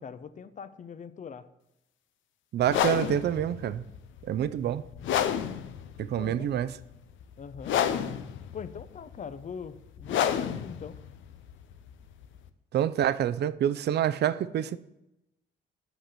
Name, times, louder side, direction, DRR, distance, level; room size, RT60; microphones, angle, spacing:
voice 1, 0.0-1.5 6.2-6.5 7.4-7.8 8.5-11.0, left 6 dB, 40° left, 0.7 m, -42 dB
voice 2, 2.5-3.8 4.2-4.8 6.0-6.7 12.7-14.8, right 10 dB, 55° right, 0.5 m, -27 dB
sound 1, 2.6-12.5, left 9 dB, 75° left, 0.7 m, -31 dB
8.0 x 5.9 x 6.7 m
cardioid pair, 90°, 20 cm